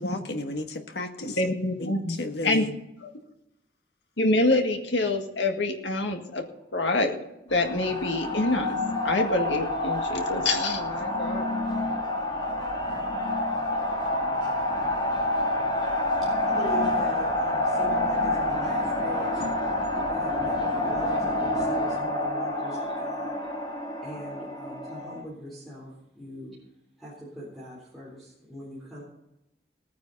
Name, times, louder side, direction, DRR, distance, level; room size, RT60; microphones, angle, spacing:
voice 1, 0.0-1.4 1.8-2.8, left 2 dB, 60° left, 5 dB, 1.6 m, -33 dB
voice 2, 1.2-2.2 2.4-2.6 3.0-3.1 4.2-6.4 6.7-7.2 7.5-8.8 9.0-11.5, left 2 dB, 85° left, 4 dB, 1.9 m, -26 dB
sound 1, 7.5-25.2, left 1 dB, 25° left, 3.1 m, -28 dB
voice 3, 16.2-19.4 20.0-23.4 24.0-26.6 27.0-29.0, equal, ahead, -8 dB, 3.7 m, -41 dB
18.5 x 9.6 x 4.1 m, 0.90 s
head